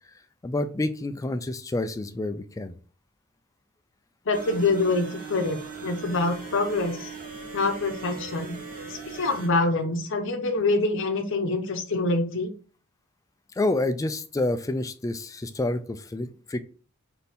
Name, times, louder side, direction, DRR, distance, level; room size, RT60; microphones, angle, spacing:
voice 1, 0.4-2.8 13.6-16.6, left 2 dB, 15° left, 9 dB, 0.3 m, -28 dB
voice 2, 4.3-7.1 7.5-8.6 8.8-12.5, left 3 dB, 65° left, 5 dB, 0.7 m, -25 dB
sound 1, 4.3-9.5, right 5 dB, 40° right, 0.9 m, -39 dB
4.1 x 2.8 x 3.4 m, 0.40 s
head